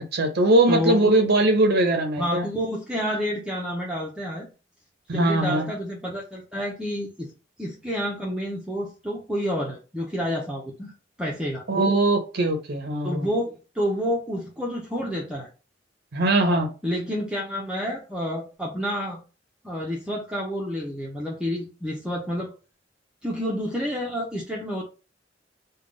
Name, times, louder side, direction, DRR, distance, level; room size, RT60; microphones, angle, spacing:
voice 1, 0.1-2.5 5.1-5.7 11.7-13.3 16.1-16.7, right 2 dB, 60° right, 5 dB, 0.6 m, -21 dB
voice 2, 0.7-1.0 2.2-4.5 5.1-7.3 7.6-10.9 11.2-11.6 13.0-15.5 16.8-19.2 19.6-22.5 23.2-24.8, equal, 5° right, -3 dB, 0.6 m, -29 dB
3.5 x 2.2 x 3.7 m, 0.33 s
head